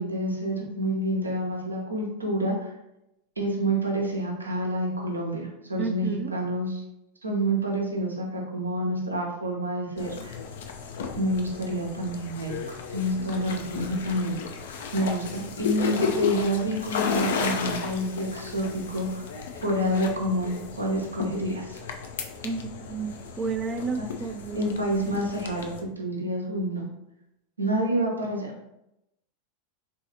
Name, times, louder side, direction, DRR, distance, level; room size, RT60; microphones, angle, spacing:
voice 1, 0.0-2.7 3.4-6.8 7.2-10.4 11.2-12.5 12.9-14.3 14.9-19.3 19.6-21.8 24.0-24.1 24.5-26.8 27.6-28.7, right 1 dB, 85° right, -1 dB, 0.8 m, -28 dB
voice 2, 5.8-6.3 22.4-24.9, right 4 dB, 25° right, 8 dB, 0.3 m, -32 dB
sound 1, 10.0-25.8, left 5 dB, 65° left, 0.4 m, -34 dB
3.8 x 2.8 x 2.8 m, 0.85 s
figure-of-eight pair, 90°, 0 cm